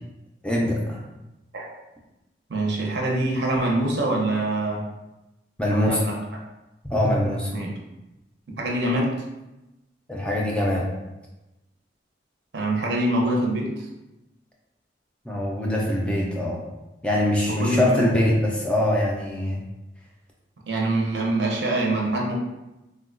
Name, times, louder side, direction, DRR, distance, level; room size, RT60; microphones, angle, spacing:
voice 1, 0.4-1.0 5.6-6.0 6.9-7.5 10.1-10.9 15.3-16.6 17.0-19.6, left 1 dB, 5° left, -3 dB, 0.3 m, -23 dB
voice 2, 2.5-4.9 5.7-6.2 7.5-7.7 8.6-9.1 12.5-13.9 17.5-18.3 20.7-22.4, right 2 dB, 70° right, -1 dB, 0.6 m, -24 dB
3.7 x 2.1 x 2.4 m, 0.98 s
head